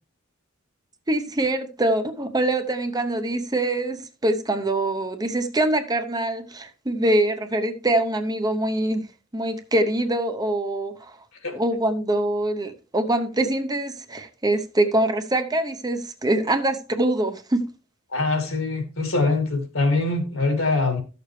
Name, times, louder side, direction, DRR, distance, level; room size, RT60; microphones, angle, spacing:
voice 1, 1.1-9.1 9.3-11.1 11.5-17.7, right 1 dB, 20° right, 0.7 m, -24 dB
voice 2, 18.1-21.0, left 3 dB, 75° left, 2.4 m, -23 dB
13.0 x 6.7 x 3.2 m
head